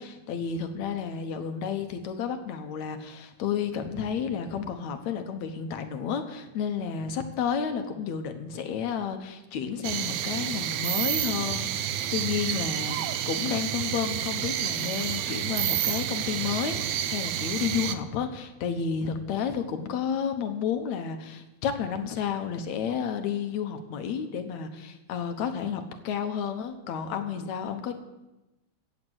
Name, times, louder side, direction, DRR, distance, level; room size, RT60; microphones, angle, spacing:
voice 1, 0.0-27.9, left 7 dB, 75° left, 7 dB, 2.3 m, -31 dB
sound 1, 9.8-17.9, right 11 dB, 75° right, 1.8 m, -29 dB
15.5 x 7.3 x 7.9 m, 1.0 s
omnidirectional pair, 3.5 m